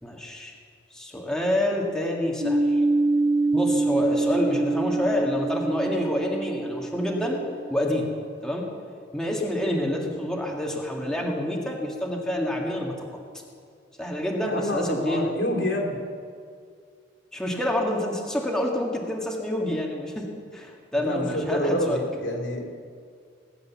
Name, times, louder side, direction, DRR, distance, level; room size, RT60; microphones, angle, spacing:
voice 1, 0.0-0.5 0.9-2.8 3.5-7.4 7.7-8.1 8.4-8.7 9.1-13.2 14.0-15.2 17.3-20.3 20.5-22.0, left 1 dB, 5° left, -2 dB, 1.7 m, -27 dB
sound 1, 2.4-7.9, right 2 dB, 80° right, 3.3 m, -25 dB
voice 2, 14.4-16.0 20.9-22.7, equal, 75° left, 0 dB, 3.0 m, -27 dB
19.5 x 8.3 x 7.1 m, 2.2 s
head